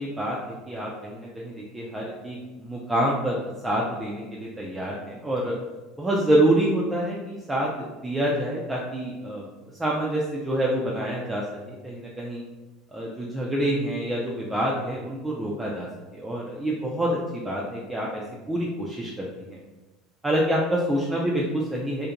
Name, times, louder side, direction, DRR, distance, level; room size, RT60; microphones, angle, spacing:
voice 1, 0.0-5.5 6.0-9.5 9.8-12.4 12.9-15.9 16.1-18.2 18.5-19.6 20.2-22.1, right 1 dB, 15° right, -4 dB, 0.4 m, -27 dB
2.4 x 2.2 x 2.8 m, 1.1 s
hypercardioid pair, 80°, 0 cm